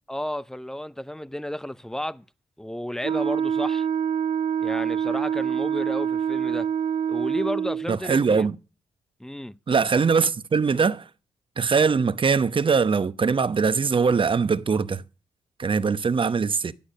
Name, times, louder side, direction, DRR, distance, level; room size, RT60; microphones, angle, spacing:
voice 1, 0.1-2.2 2.6-3.9 4.6-6.7 7.1-8.5 9.2-9.6, left 1 dB, 5° left, 0.6 m, -32 dB
Wind instrument woodwind instrument, 3.0-7.9, right 8 dB, 60° right, 1.2 m, -26 dB
voice 2, 7.9-8.6 9.7-11.1 11.6-15.0 15.6-16.7, right 5 dB, 40° right, 0.9 m, -22 dB
11.5 x 8.6 x 6.4 m
hypercardioid pair, 45°, 14 cm